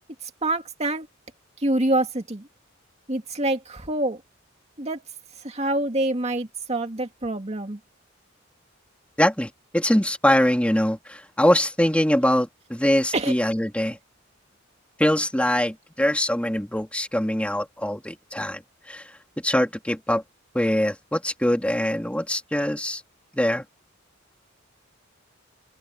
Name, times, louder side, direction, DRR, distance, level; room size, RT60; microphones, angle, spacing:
voice 1, 0.2-1.1 1.6-2.5 3.1-4.2 4.8-5.0 5.4-7.8 13.1-13.3, right 1 dB, 35° right, 2.1 m, -26 dB
voice 2, 9.2-14.0 15.0-18.6 18.9-19.0 19.4-20.2 20.5-23.0 23.3-23.6, left 1 dB, 5° left, 2.8 m, -23 dB
open air
head